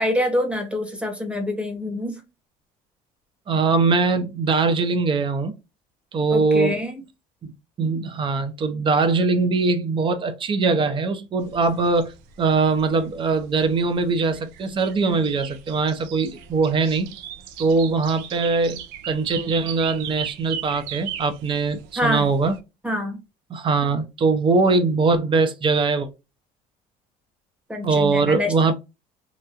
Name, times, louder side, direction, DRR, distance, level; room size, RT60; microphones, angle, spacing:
voice 1, 0.0-2.2 6.3-7.0 22.0-22.3 22.8-23.2 27.7-28.7, left 1 dB, 5° right, 1.0 m, -26 dB
voice 2, 3.5-5.5 6.1-6.8 7.4-7.5 7.8-17.1 17.6-22.6 23.5-26.1 27.8-28.7, right 4 dB, 30° right, 0.6 m, -21 dB
sound 1, 11.4-22.6, right 10 dB, 85° right, 0.5 m, -38 dB
3.0 x 2.2 x 2.4 m
cardioid pair, 105°, 16 cm